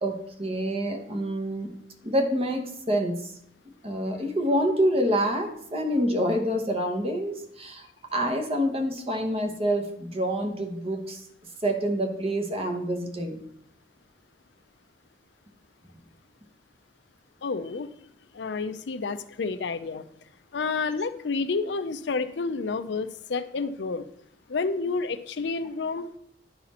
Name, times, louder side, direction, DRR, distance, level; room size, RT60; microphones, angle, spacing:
voice 1, 0.0-1.7 2.0-3.3 3.8-7.9 8.1-11.2 11.6-13.4, equal, 35° right, 4 dB, 1.0 m, -27 dB
voice 2, 17.4-17.9 18.3-20.1 20.5-24.0 24.5-26.2, left 4 dB, 65° left, 12 dB, 0.5 m, -30 dB
10.5 x 4.1 x 4.2 m, 0.70 s
head